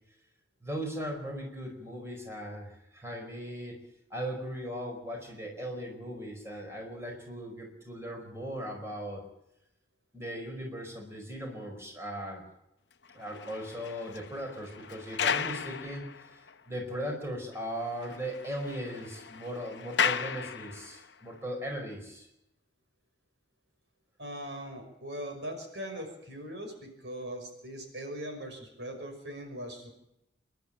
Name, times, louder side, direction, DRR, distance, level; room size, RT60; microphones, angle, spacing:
voice 1, 0.6-3.8 4.1-9.2 10.1-12.4 13.1-16.4 16.7-22.3, equal, 15° right, 1 dB, 5.0 m, -38 dB
sound 1, 13.0-16.5 17.0-17.1 17.5-17.6 17.9-21.1, left 7 dB, 65° left, 0.9 m, -35 dB
voice 2, 24.2-29.9, equal, 65° right, 4 dB, 5.7 m, -40 dB
27.0 x 12.0 x 8.9 m, 0.85 s
head